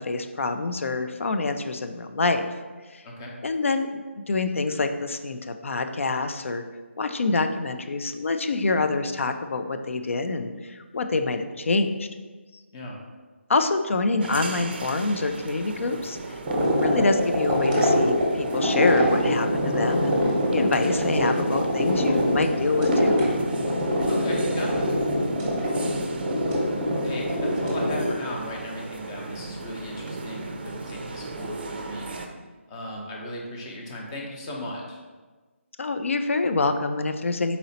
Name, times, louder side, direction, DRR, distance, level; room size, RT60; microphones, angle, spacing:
voice 1, 0.0-2.5 2.9-3.0 3.4-6.6 7.0-12.1 13.5-20.2 20.5-23.2 35.8-37.6, left 3 dB, 70° left, 8 dB, 0.4 m, -26 dB
sound 1, 14.2-32.3, right 3 dB, 45° right, 0.4 m, -38 dB
sound 2, 16.4-28.1, equal, 20° right, 0.8 m, -24 dB
voice 2, 24.1-24.9 27.0-32.1 32.7-35.0, left 1 dB, 20° left, -1 dB, 0.6 m, -36 dB
4.1 x 2.8 x 4.0 m, 1.3 s
figure-of-eight pair, 160°, 7 cm